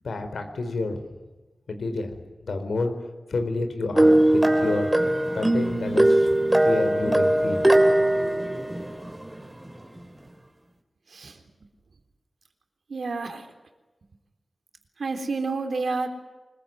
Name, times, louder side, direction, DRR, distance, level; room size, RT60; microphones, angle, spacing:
voice 1, 0.0-1.0 1.7-2.9 3.3-4.9 5.3-6.3 6.6-7.6, left 3 dB, 85° left, 7 dB, 4.4 m, -29 dB
sound 1, 3.9-9.4, right 1 dB, 15° right, 3.1 m, -20 dB
voice 2, 12.9-13.5 15.0-16.1, right 3 dB, 70° right, 6 dB, 3.5 m, -29 dB
25.0 x 22.0 x 9.3 m, 1.1 s
wide cardioid pair, 100°, 0 cm